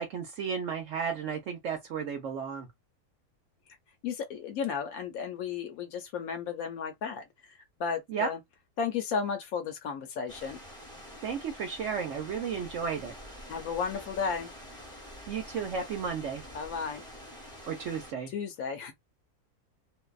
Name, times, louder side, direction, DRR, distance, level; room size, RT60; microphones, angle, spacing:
voice 1, 0.0-2.7 8.1-8.3 11.2-13.1 15.3-16.4 17.6-18.3, right 6 dB, 65° right, 0.8 m, -33 dB
voice 2, 4.0-8.4 8.8-10.6 13.5-14.5 16.5-17.0 18.3-18.9, left 6 dB, 70° left, 0.9 m, -34 dB
sound 1, 10.3-18.1, equal, 5° left, 0.6 m, -47 dB
2.6 x 2.2 x 2.3 m
omnidirectional pair, 1.7 m